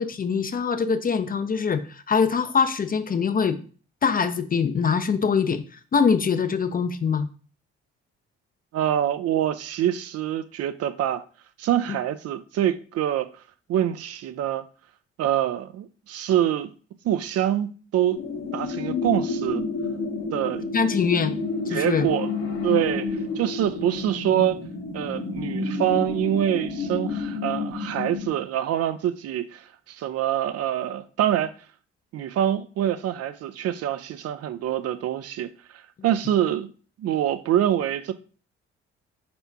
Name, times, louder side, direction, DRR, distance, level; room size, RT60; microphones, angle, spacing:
voice 1, 0.0-3.6 4.0-5.6 5.9-7.3 11.9-12.0 20.7-21.3 21.7-22.1, left 6 dB, 30° left, 0.5 m, -23 dB
voice 2, 8.7-11.2 11.6-13.3 13.7-14.6 15.2-16.7 17.0-18.2 18.5-19.7 20.3-20.7 21.7-22.3 22.6-24.6 24.9-31.5 32.1-36.7 37.0-38.1, right 11 dB, 50° right, 0.4 m, -25 dB
sound 1, 18.1-28.3, left 3 dB, 75° left, 1.5 m, -30 dB
4.4 x 4.2 x 2.7 m
hypercardioid pair, 50°, 31 cm